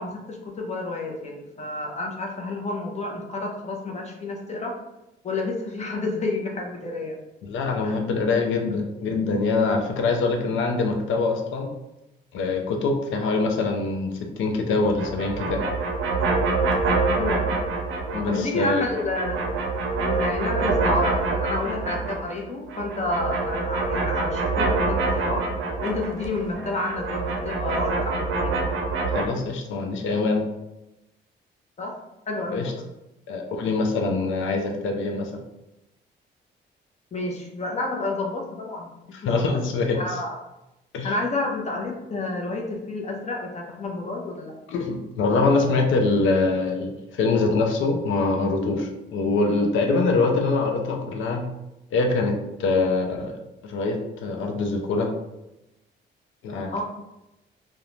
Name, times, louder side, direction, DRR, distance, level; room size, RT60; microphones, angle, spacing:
voice 1, 0.0-4.7 5.2-7.1 7.8-8.0 17.2-17.7 18.3-19.4 20.0-25.4 25.8-28.6 31.8-31.9 32.3-32.7 37.1-38.9 39.4-39.6 39.9-40.4 41.0-44.5 56.7-56.8, left 2 dB, 35° left, 0 dB, 0.6 m, -30 dB
voice 2, 7.4-11.7 12.3-15.6 18.1-18.8 29.1-30.5 32.5-32.7 33.3-35.4 39.1-40.0 40.9-41.1 44.7-51.5 51.9-55.1 56.4-56.8, left 3 dB, 75° left, 3 dB, 0.5 m, -24 dB
sound 1, 14.8-18.4 18.7-22.4 22.7-29.2, right 3 dB, 80° right, 0.5 m, -26 dB
2.4 x 2.1 x 3.0 m, 0.93 s
cardioid pair, 90°, 20 cm